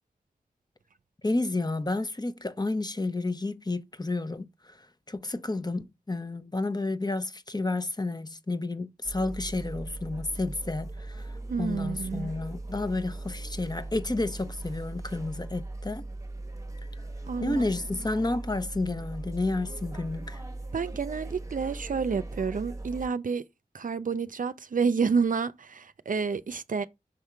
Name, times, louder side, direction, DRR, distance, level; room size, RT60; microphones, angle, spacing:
voice 1, 1.2-4.5 5.1-11.2 11.6-16.1 17.4-20.4, left 2 dB, 25° left, 0.8 m, -31 dB
sound 1, 9.0-23.1, right 2 dB, 20° right, 1.1 m, -39 dB
voice 2, 11.5-12.3 17.3-17.6 20.7-23.4 23.7-26.9, right 5 dB, 60° right, 0.5 m, -29 dB
6.3 x 3.6 x 4.5 m
cardioid pair, 45°, 15 cm